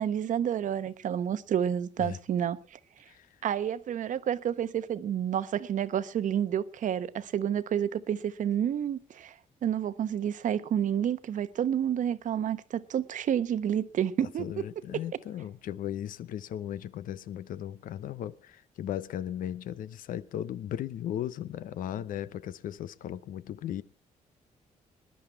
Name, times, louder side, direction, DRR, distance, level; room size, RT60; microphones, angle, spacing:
voice 1, 0.0-2.8 3.4-9.3 9.6-14.5, right 9 dB, 70° right, 1.0 m, -29 dB
voice 2, 14.4-23.8, left 11 dB, 85° left, 0.8 m, -36 dB
20.0 x 10.5 x 4.6 m
cardioid pair, 105°, 14 cm